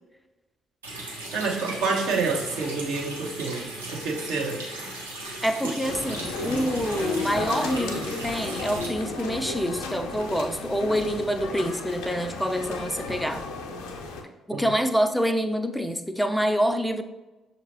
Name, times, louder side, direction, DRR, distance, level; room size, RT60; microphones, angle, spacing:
Water tap faucet, 0.8-8.9, right 2 dB, 85° right, 0.7 m, -37 dB
voice 1, 1.3-3.6 4.0-4.6 14.5-14.6, right 4 dB, 65° right, -1 dB, 1.0 m, -27 dB
voice 2, 5.4-13.4 14.5-17.0, equal, ahead, 8 dB, 0.4 m, -26 dB
sound 1, 5.8-14.2, left 3 dB, 70° left, 0.5 m, -34 dB
6.5 x 2.8 x 2.9 m, 1.1 s
figure-of-eight pair, 45°, 0 cm